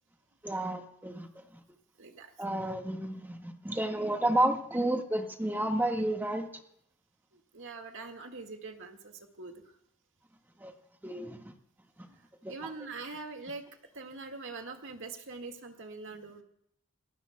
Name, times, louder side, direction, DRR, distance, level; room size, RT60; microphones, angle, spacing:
voice 1, 0.4-1.6 2.4-6.5 10.6-10.7 11.0-11.5 12.0-12.1 12.4-12.7, right 1 dB, 10° right, 3 dB, 1.7 m, -31 dB
voice 2, 2.0-2.3 7.5-9.5 12.1-12.2 12.5-13.7 13.9-16.4, right 3 dB, 60° right, 4 dB, 2.0 m, -43 dB
26.5 x 18.5 x 2.3 m, 0.72 s
head